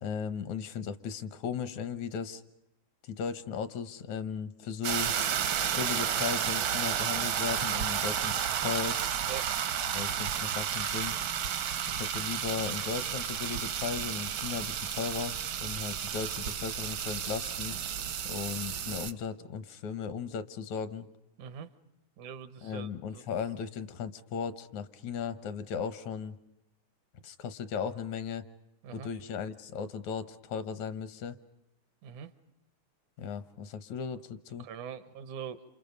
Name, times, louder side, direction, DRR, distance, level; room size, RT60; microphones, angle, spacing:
voice 1, 0.0-2.4 3.0-5.1 5.8-9.0 9.8-11.2 11.9-17.8 18.2-21.1 22.6-26.4 27.2-28.4 28.9-31.4 33.2-34.7, left 6 dB, 75° left, 13 dB, 2.4 m, -36 dB
sound 1, 4.8-19.1, right 9 dB, 65° right, 1.2 m, -32 dB
voice 2, 21.4-21.7 22.2-23.4 28.8-29.1 32.0-32.3 34.6-35.6, right 8 dB, 80° right, 12 dB, 2.6 m, -43 dB
29.5 x 28.0 x 5.3 m, 0.85 s
omnidirectional pair, 3.4 m